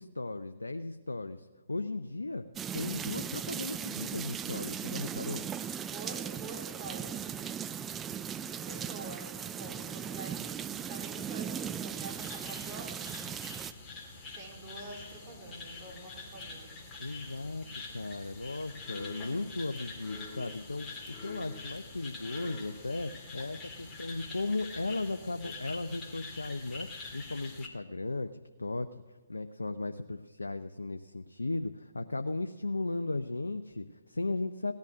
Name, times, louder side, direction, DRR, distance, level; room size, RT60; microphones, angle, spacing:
voice 1, 0.0-2.5 2.7-5.5 17.0-34.7, left 2 dB, 85° left, 8 dB, 0.6 m, -36 dB
sound 1, 2.6-13.7, right 8 dB, 15° right, 0.4 m, -38 dB
voice 2, 5.9-7.1 8.5-10.5 10.7-13.3 14.3-16.8 23.7-23.9, right 2 dB, 30° right, 1 dB, 3.9 m, -47 dB
sound 2, 11.9-27.7, left 3 dB, 15° left, 2.4 m, -45 dB
17.0 x 10.5 x 6.2 m, 1.3 s
figure-of-eight pair, 135°, 0 cm